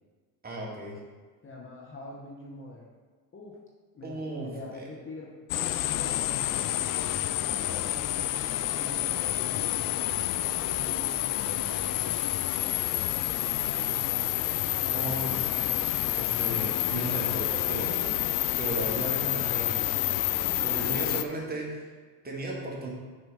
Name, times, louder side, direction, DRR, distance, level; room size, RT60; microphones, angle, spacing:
voice 1, 0.4-1.0 4.0-4.8 14.8-18.2 18.6-21.9 22.2-22.9, right 1 dB, 20° right, -3 dB, 2.4 m, -36 dB
voice 2, 1.4-2.9 3.3-3.6 3.9-8.3 8.7-13.7 20.6-21.2, left 2 dB, 25° left, -1 dB, 1.3 m, -45 dB
sound 1, 5.5-21.2, left 14 dB, 45° left, 0.5 m, -29 dB
6.9 x 5.0 x 5.1 m, 1.5 s
hypercardioid pair, 85°, 48 cm